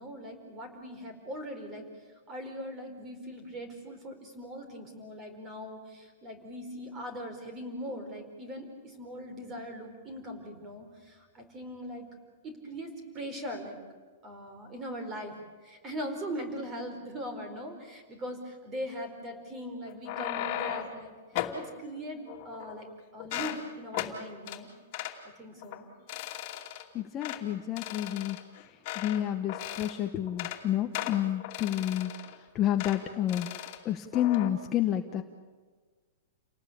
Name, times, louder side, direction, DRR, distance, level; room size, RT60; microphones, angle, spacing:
voice 1, 0.0-1.9 2.3-12.1 12.4-13.8 14.2-15.3 15.6-24.7 25.4-25.9 27.6-27.8, equal, 20° right, 6 dB, 4.5 m, -40 dB
sound 1, 19.9-21.0 21.3-21.6 22.3-22.9 23.2-23.6 23.9-24.1 24.5-24.6 24.9-25.2 25.6-25.8 26.1-26.8 27.2-27.4 27.8-29.2 29.5-30.0 30.3-30.6 30.9-32.3 32.8-33.0 33.3-33.8 34.1-34.5, left 12 dB, 35° left, 2.6 m, -37 dB
voice 2, 26.9-28.4 28.9-33.5 33.8-35.2, left 11 dB, 20° left, 5 dB, 1.0 m, -30 dB
29.5 x 19.0 x 8.6 m, 1.4 s
supercardioid pair, 170°, 0 cm